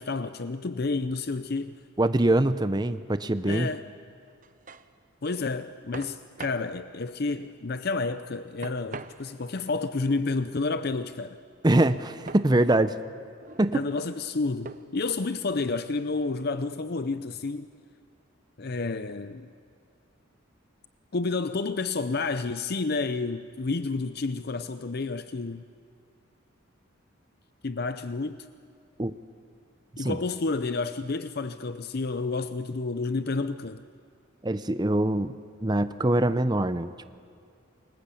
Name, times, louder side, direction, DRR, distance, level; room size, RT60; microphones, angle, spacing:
voice 1, 0.0-1.7 3.4-3.8 5.2-11.4 13.7-17.7 18.6-19.5 21.1-25.7 27.6-28.5 30.0-33.8, left 3 dB, 50° left, 0.6 m, -30 dB
voice 2, 2.0-3.7 11.6-13.0 13.6-13.8 29.0-29.1 30.0-30.2 34.4-37.1, right 1 dB, 20° right, 0.6 m, -24 dB
sound 1, 4.3-4.9 5.9-6.7 8.6-9.6 12.3-12.5 13.2-13.7 14.6-15.1, right 4 dB, 40° right, 0.9 m, -43 dB
29.5 x 21.0 x 8.5 m
head